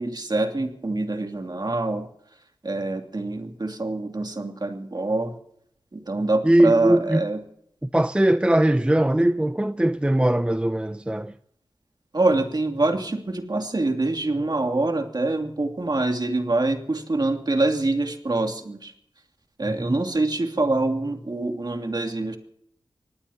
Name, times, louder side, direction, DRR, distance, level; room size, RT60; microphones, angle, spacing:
voice 1, 0.0-2.1 2.6-5.3 5.9-7.4 12.1-18.9 19.6-22.4, right 2 dB, 45° right, 2.7 m, -25 dB
voice 2, 6.4-7.2 7.8-11.3, right 1 dB, 10° right, 0.6 m, -20 dB
25.5 x 18.5 x 2.9 m
cardioid pair, 50°, 9 cm